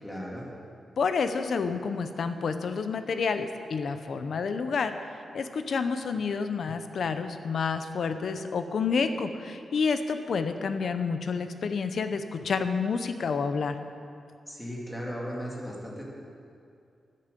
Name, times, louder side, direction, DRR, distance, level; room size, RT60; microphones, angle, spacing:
voice 1, 0.0-0.5 14.5-16.0, equal, 5° left, -3 dB, 2.4 m, -36 dB
voice 2, 1.0-13.8, left 5 dB, 60° left, 9 dB, 0.7 m, -29 dB
13.0 x 11.0 x 5.3 m, 2.4 s
wide cardioid pair, 140°, 0 cm